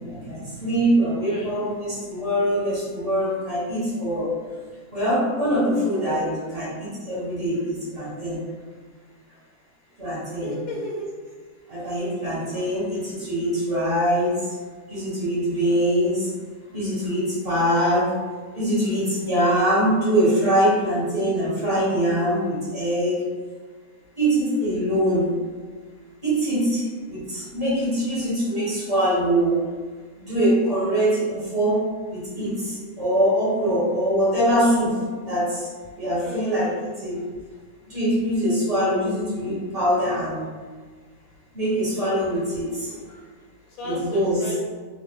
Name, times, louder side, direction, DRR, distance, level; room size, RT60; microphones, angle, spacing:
voice 1, 0.0-4.3 4.9-8.4 10.0-10.5 11.7-14.5 14.9-16.3 16.7-18.1 18.5-23.2 24.2-25.3 26.2-29.6 30.3-31.8 32.1-35.7 35.9-36.7 37.0-37.2 37.9-40.5 41.5-42.9 43.8-44.4, equal, 45° right, -9 dB, 1.4 m, -23 dB
voice 2, 1.2-1.6 10.4-11.1 12.5-12.9 36.2-36.9 42.8-43.2 43.8-44.6, left 1 dB, 80° left, -2 dB, 1.1 m, -35 dB
2.9 x 2.1 x 3.5 m, 1.5 s
omnidirectional pair, 1.5 m